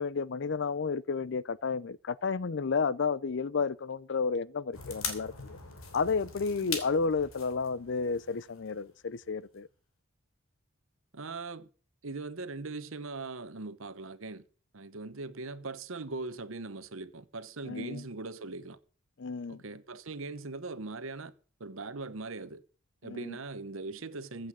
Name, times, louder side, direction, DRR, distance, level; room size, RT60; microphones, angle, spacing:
voice 1, 0.0-5.6 5.9-9.7 17.6-18.0 19.2-19.6 23.0-23.4, left 5 dB, 55° left, 0.5 m, -32 dB
sound 1, 4.7-9.3 9.6-9.7, left 5 dB, 75° left, 3.1 m, -41 dB
voice 2, 11.1-11.7 12.0-14.4 14.7-18.8 19.5-21.3 21.6-22.6 23.0-24.5, right 3 dB, 70° right, 1.0 m, -40 dB
15.0 x 7.9 x 6.2 m
head